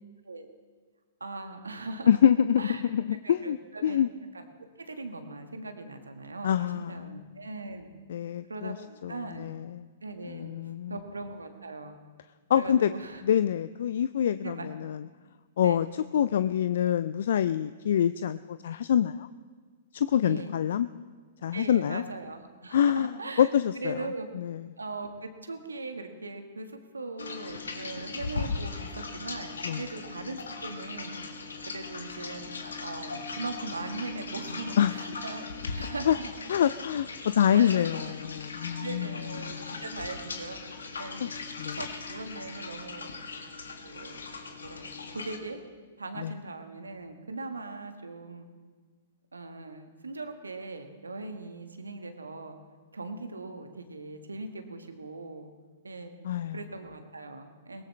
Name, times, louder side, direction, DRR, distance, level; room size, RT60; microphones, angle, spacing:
voice 1, 1.2-2.2 2.6-2.8 3.2-4.0 4.3-4.4 4.8-7.9 8.5-9.5 10.0-10.5 10.9-12.0 12.5-13.2 14.4-14.7 15.6-15.8 20.2-20.5 21.5-24.3 24.8-31.2 31.7-32.5 32.8-35.4 35.8-36.3 37.5-37.8 38.8-40.6 41.0-41.3 41.7-43.1 43.8-44.2 44.6-45.6 46.0-48.4 49.3-52.6 52.9-55.5 55.8-56.1 56.5-57.8, right 3 dB, 85° right, 6 dB, 1.6 m, -40 dB
voice 2, 2.1-4.1 6.4-7.2 8.1-8.8 9.0-9.8 10.3-11.0 12.5-12.9 13.2-15.0 15.6-19.3 19.9-20.9 21.4-22.0 22.7-24.0 24.4-24.6 29.6-29.8 34.8-35.0 36.1-36.2 36.5-39.1 39.4-39.8 41.2-41.3 41.6-41.8 46.2-46.3 56.2-56.6, left 9 dB, 65° left, 14 dB, 0.4 m, -26 dB
sound 1, 27.2-45.4, left 4 dB, 80° left, 1.4 m, -39 dB
21.5 x 18.0 x 3.3 m, 1.5 s
figure-of-eight pair, 115°, 0 cm